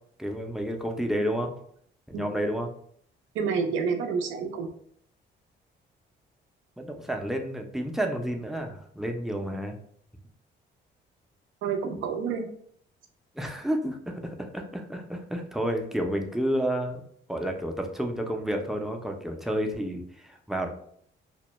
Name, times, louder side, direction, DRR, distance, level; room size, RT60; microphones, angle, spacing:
voice 1, 0.2-1.5 2.1-2.7 6.8-9.8 13.4-17.0 17.3-20.7, equal, ahead, 3 dB, 0.4 m, -30 dB
voice 2, 3.3-4.7 11.6-12.5, right 5 dB, 80° right, 5 dB, 0.5 m, -28 dB
2.1 x 2.1 x 2.9 m, 0.64 s
cardioid pair, 90°, 20 cm